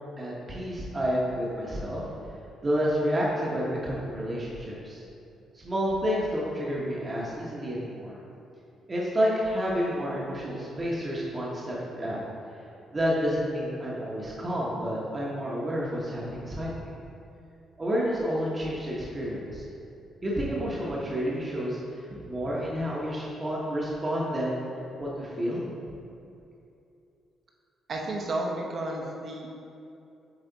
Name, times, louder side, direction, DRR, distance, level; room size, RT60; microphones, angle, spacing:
voice 1, 0.2-2.0 2.6-5.0 5.5-8.2 8.9-12.2 12.9-16.9 17.8-19.6 20.2-21.8 22.3-24.6 25.0-25.6, equal, 30° right, -5 dB, 1.1 m, -29 dB
voice 2, 27.9-29.5, right 2 dB, 50° right, 0 dB, 1.0 m, -32 dB
8.2 x 3.4 x 4.0 m, 2.7 s
cardioid pair, 90°, 0 cm